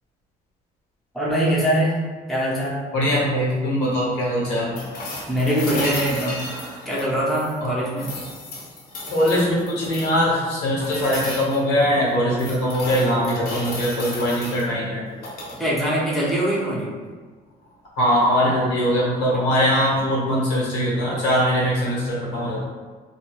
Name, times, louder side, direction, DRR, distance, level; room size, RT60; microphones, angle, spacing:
voice 1, 1.1-2.0 2.3-2.8 5.3-6.5 6.8-8.1 15.6-16.9 19.3-19.4, equal, ahead, -8 dB, 0.8 m, -23 dB
voice 2, 2.9-4.8 7.6-7.7 9.1-15.0 18.0-22.6, equal, 85° left, -6 dB, 1.1 m, -21 dB
sound 1, 4.7-7.6 7.9-10.2 10.8-11.6 12.1-14.6 15.1-15.6 17.6-17.7, left 2 dB, 60° left, 0.8 m, -33 dB
2.7 x 2.3 x 3.0 m, 1.5 s
cardioid pair, 110°, 17 cm